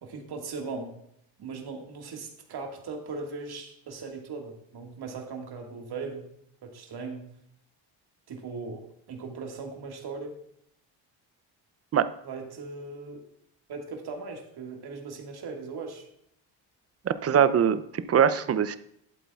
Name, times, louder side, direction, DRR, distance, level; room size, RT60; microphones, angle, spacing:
voice 1, 0.0-0.9 1.4-6.3 6.6-7.3 8.3-10.4 12.2-13.2 13.7-16.1, right 4 dB, 55° right, 2 dB, 1.8 m, -38 dB
voice 2, 17.1-18.8, right 8 dB, 35° right, 13 dB, 0.5 m, -22 dB
11.5 x 7.9 x 2.3 m, 0.74 s
cardioid pair, 110°, 45 cm